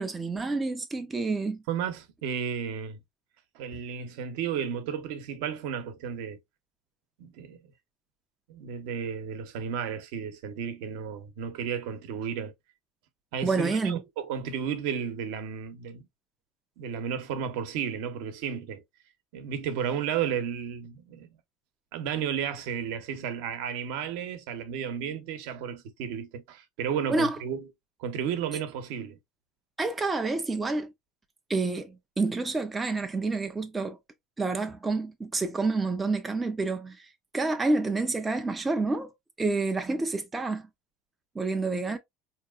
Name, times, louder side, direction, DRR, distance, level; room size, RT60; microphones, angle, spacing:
voice 1, 0.0-1.6 13.4-14.0 27.1-27.4 29.8-30.9 31.5-34.0 34.4-39.1 39.4-40.7 41.4-42.0, right 3 dB, 10° right, 0.4 m, -28 dB
voice 2, 1.7-3.0 3.5-6.4 7.2-7.6 8.5-12.5 13.3-16.1 16.8-18.8 19.3-21.3 21.9-27.7 28.0-29.2, right 8 dB, 65° right, 0.8 m, -33 dB
4.5 x 2.8 x 2.3 m
cardioid pair, 170°, 0 cm